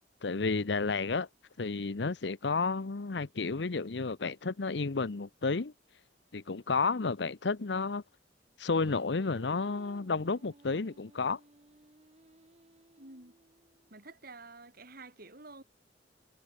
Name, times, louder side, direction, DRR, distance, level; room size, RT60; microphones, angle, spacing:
voice 1, 0.2-1.3 1.6-5.7 6.3-8.0 8.6-11.4, left 4 dB, 70° left, 0.8 m, -31 dB
Singing, 8.7-14.0, right 2 dB, 35° right, 1.5 m, -58 dB
voice 2, 13.0-13.4 13.9-15.6, right 3 dB, 55° right, 5.5 m, -50 dB
head